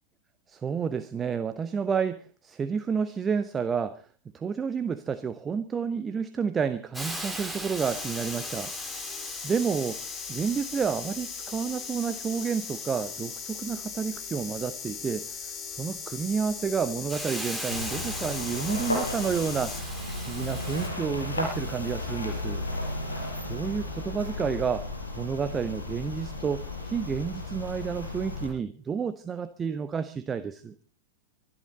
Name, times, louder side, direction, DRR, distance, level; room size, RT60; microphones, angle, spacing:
voice 1, 0.5-4.1 4.3-8.7 9.4-22.6 23.5-24.8 25.2-30.7, right 6 dB, 20° right, 11 dB, 0.9 m, -30 dB
Hiss, 6.9-20.9, equal, ahead, 2.8 m, -41 dB
sound 1, 7.8-19.8, left 6 dB, 25° left, 3.2 m, -39 dB
sound 2, 17.7-28.5, left 2 dB, 80° left, 6.0 m, -34 dB
25.0 x 12.0 x 4.1 m, 0.36 s
figure-of-eight pair, 90°, 0 cm